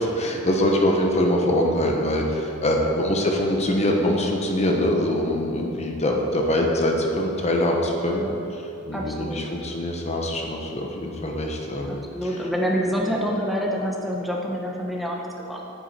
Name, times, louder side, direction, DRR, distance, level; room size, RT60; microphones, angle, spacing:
voice 1, 0.0-8.2 8.5-12.4, left 1 dB, 30° left, 1 dB, 1.0 m, -23 dB
voice 2, 8.9-9.5 11.9-15.6, equal, ahead, -2 dB, 1.0 m, -27 dB
10.5 x 9.6 x 4.2 m, 2.7 s
head